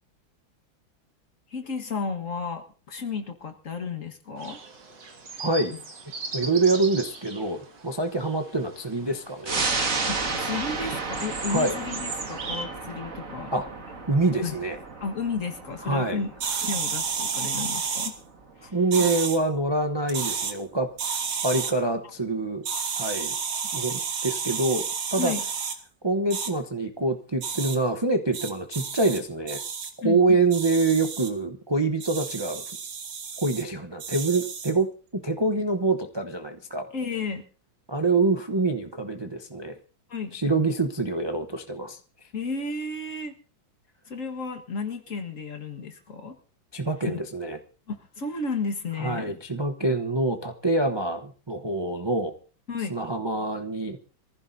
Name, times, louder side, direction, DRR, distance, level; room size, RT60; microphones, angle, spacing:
voice 1, 1.5-4.6 10.0-13.6 14.4-14.6 15.0-16.3 16.6-18.1 18.6-19.1 25.2-25.5 30.0-30.2 36.9-37.4 40.1-40.4 42.3-43.3 44.1-46.4 47.0-47.2 47.9-49.4 52.7-53.0, left 4 dB, 40° left, 6 dB, 1.7 m, -33 dB
sound 1, 4.4-12.6, right 3 dB, 55° right, 2.6 m, -39 dB
voice 2, 5.4-5.7 6.3-9.7 11.5-11.8 13.5-13.7 14.1-14.8 15.8-16.2 18.6-20.9 21.4-22.6 23.0-23.3 23.7-24.8 25.1-25.3 26.0-29.6 30.0-32.6 33.4-34.9 35.2-36.9 37.9-39.8 40.3-42.0 46.7-47.6 49.0-52.4 52.9-54.0, right 3 dB, 25° right, 4 dB, 0.5 m, -25 dB
sound 2, 9.5-20.4 20.8-20.9, right 3 dB, 40° right, 2.1 m, -33 dB
sound 3, 16.4-18.1 18.9-19.4 20.1-20.5 21.0-21.7 22.6-25.8 26.3-26.5 27.4-27.8 28.3-29.2 29.5-29.9 30.5-31.3 32.0-33.6 34.0-34.7, right 6 dB, 90° right, 2.4 m, -31 dB
24.5 x 15.0 x 2.7 m, 0.39 s
omnidirectional pair, 2.2 m